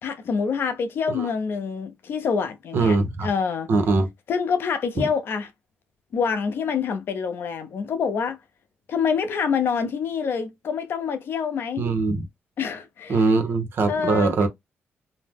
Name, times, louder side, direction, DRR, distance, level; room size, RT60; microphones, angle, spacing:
voice 1, 0.0-3.7 4.3-5.5 6.1-8.4 8.9-11.8 12.6-13.4 13.9-14.5, left 6 dB, 65° left, 0.6 m, -26 dB
voice 2, 2.7-3.3 3.7-4.1 5.0-5.1 11.8-12.2 13.1-14.5, right 3 dB, 65° right, 0.9 m, -21 dB
2.7 x 2.0 x 3.4 m
cardioid pair, 85°, 4 cm